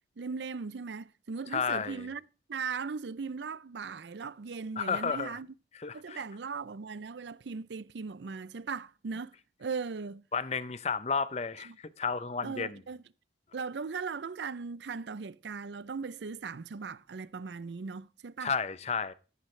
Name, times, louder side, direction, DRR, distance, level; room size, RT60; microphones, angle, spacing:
voice 1, 0.2-2.2 2.5-5.5 5.9-9.3 9.6-10.2 11.7-11.8 12.4-13.0 13.5-18.5, right 5 dB, 75° right, 0.5 m, -38 dB
voice 2, 1.5-2.1 4.8-5.4 5.7-6.2 10.3-12.8 18.4-19.1, left 5 dB, 35° left, 0.6 m, -32 dB
13.0 x 11.0 x 3.2 m
head